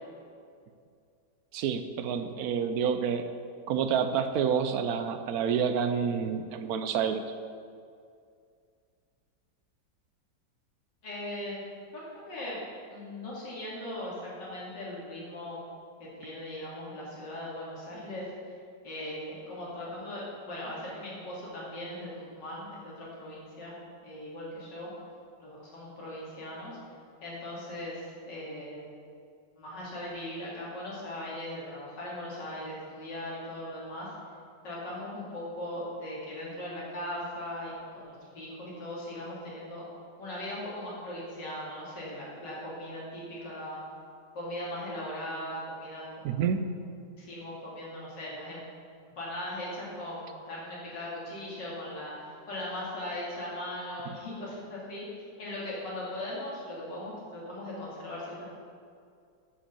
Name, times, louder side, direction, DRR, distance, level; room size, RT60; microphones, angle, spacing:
voice 1, 1.5-3.3 3.7-7.2 46.2-46.6, right 7 dB, 70° right, 9 dB, 0.9 m, -28 dB
voice 2, 11.0-11.6 11.9-12.6 12.9-15.6 16.0-18.5 18.8-23.7 24.0-24.9 25.4-26.8 27.2-28.9 29.6-34.1 34.6-39.9 40.2-43.8 44.3-46.4 47.2-48.6 49.1-52.1 52.5-58.5, left 1 dB, 75° left, -6 dB, 3.2 m, -39 dB
9.9 x 5.1 x 6.9 m, 2.3 s
omnidirectional pair, 1.9 m